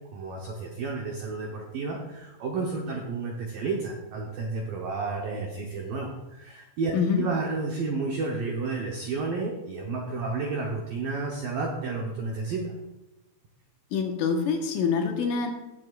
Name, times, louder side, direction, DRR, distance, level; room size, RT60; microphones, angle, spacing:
voice 1, 0.1-12.7, right 3 dB, 85° right, 0 dB, 1.9 m, -31 dB
voice 2, 6.9-7.2 13.9-15.5, left 6 dB, 80° left, 2 dB, 3.8 m, -25 dB
18.5 x 7.9 x 2.5 m, 1.0 s
omnidirectional pair, 5.7 m